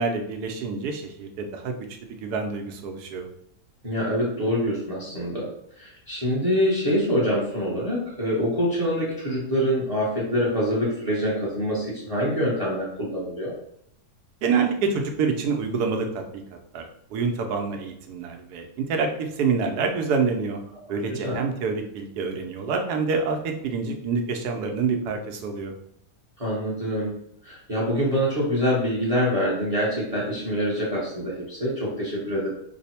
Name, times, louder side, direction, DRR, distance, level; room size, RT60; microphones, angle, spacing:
voice 1, 0.0-1.7 2.0-3.3 14.4-16.4 16.7-20.6 20.9-25.7, right 5 dB, 90° right, 4 dB, 1.2 m, -27 dB
voice 2, 3.8-5.5 5.7-13.5 21.1-21.4 26.4-27.1 27.4-32.5, equal, 30° right, -5 dB, 0.8 m, -25 dB
3.2 x 2.0 x 4.1 m, 0.72 s
omnidirectional pair, 1.6 m